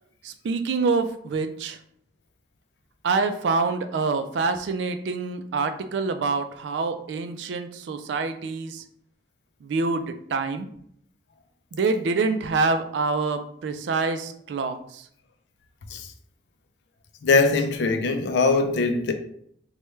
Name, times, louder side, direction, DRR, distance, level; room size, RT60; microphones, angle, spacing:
voice 1, 0.2-1.8 3.0-8.8 9.6-10.7 11.7-15.1, right 4 dB, 85° right, 0.3 m, -26 dB
voice 2, 17.2-19.1, left 3 dB, 80° left, 0.4 m, -21 dB
3.1 x 2.2 x 3.1 m
head